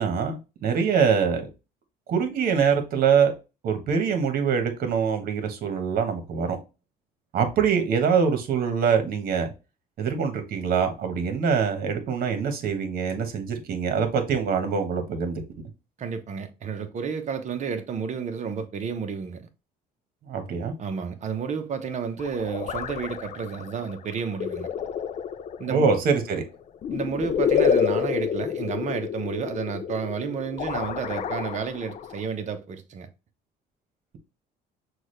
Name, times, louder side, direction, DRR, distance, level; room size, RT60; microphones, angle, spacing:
voice 1, 0.0-1.5 2.1-3.3 3.6-6.6 7.3-9.5 10.0-15.4 20.2-20.7 25.7-26.4, right 6 dB, 60° right, 1.3 m, -24 dB
voice 2, 16.0-19.4 20.8-24.7 25.6-25.9 26.9-33.1, right 6 dB, 45° right, 0.9 m, -31 dB
sound 1, 22.2-32.3, left 8 dB, 45° left, 0.4 m, -29 dB
6.1 x 2.4 x 3.2 m
cardioid pair, 110°, 17 cm